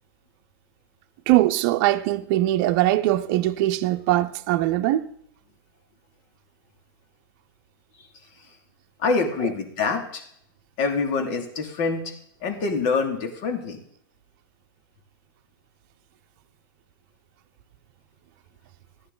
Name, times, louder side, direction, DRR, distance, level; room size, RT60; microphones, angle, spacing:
voice 1, 1.3-5.1, right 15 dB, 50° right, 0.7 m, -21 dB
voice 2, 9.0-10.2 10.8-12.0 12.4-13.8, left 4 dB, 50° left, 2.6 m, -25 dB
14.0 x 9.8 x 4.0 m
hypercardioid pair, 120°, 12 cm